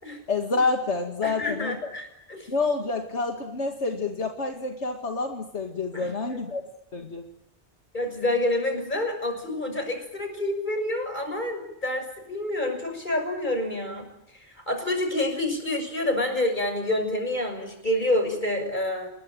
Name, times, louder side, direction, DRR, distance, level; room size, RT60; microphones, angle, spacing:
voice 1, 0.3-1.8 2.5-6.6 6.9-7.2, left 3 dB, 85° left, 4 dB, 2.4 m, -28 dB
voice 2, 1.2-2.5 5.9-6.4 7.9-19.1, left 1 dB, 45° left, 5 dB, 6.8 m, -28 dB
28.0 x 21.5 x 9.1 m, 0.82 s
omnidirectional pair, 1.1 m